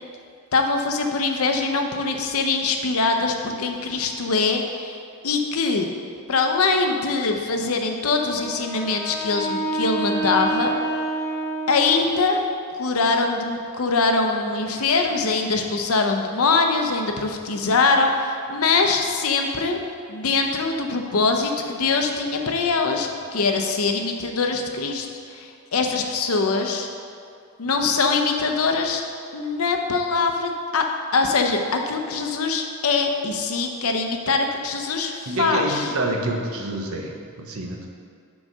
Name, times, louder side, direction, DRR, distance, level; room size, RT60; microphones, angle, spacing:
voice 1, 0.5-5.0 5.2-5.9 6.3-10.7 11.7-12.4 12.8-19.8 20.1-26.9 27.6-29.1 29.3-30.9 31.1-35.9, left 4 dB, 70° left, 4 dB, 0.7 m, -23 dB
Wind instrument woodwind instrument, 8.2-12.5, right 2 dB, 15° left, 0.6 m, -28 dB
voice 2, 35.3-37.9, right 1 dB, 70° right, 2 dB, 0.8 m, -27 dB
6.3 x 4.8 x 5.4 m, 2.3 s
head